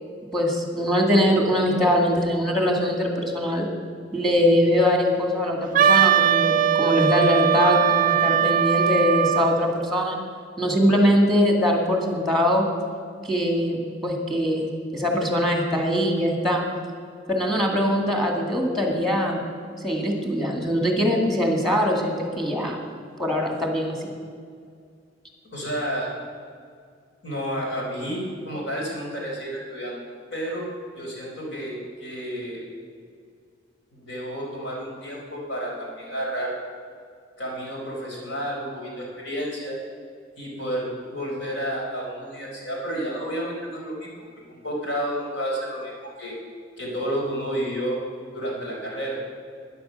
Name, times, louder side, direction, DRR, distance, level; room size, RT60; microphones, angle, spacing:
voice 1, 0.3-3.7 4.1-10.2 10.6-12.7 13.2-16.6 17.3-19.4 19.8-22.8 23.2-24.1, equal, ahead, 1 dB, 2.2 m, -22 dB
Wind instrument woodwind instrument, 5.7-9.6, right 8 dB, 45° right, 0.4 m, -20 dB
voice 2, 25.5-26.1 27.2-30.0 30.3-30.7 31.0-32.7 33.9-36.6 37.4-39.8 40.4-44.1 44.6-45.9 46.2-46.4 46.8-48.0 48.3-49.2, equal, 70° left, -2 dB, 4.2 m, -30 dB
12.5 x 10.5 x 6.5 m, 2.2 s
head